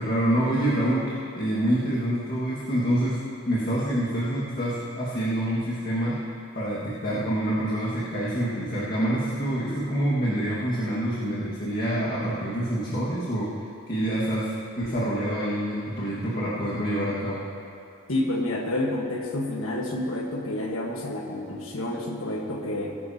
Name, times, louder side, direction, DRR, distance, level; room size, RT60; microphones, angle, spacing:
voice 1, 0.0-3.2 3.5-6.2 6.5-13.5 13.9-17.4, right 1 dB, 45° left, -8 dB, 1.8 m, -26 dB
voice 2, 18.1-23.0, left 1 dB, 90° left, 0 dB, 1.5 m, -29 dB
19.0 x 11.0 x 2.9 m, 2.6 s
head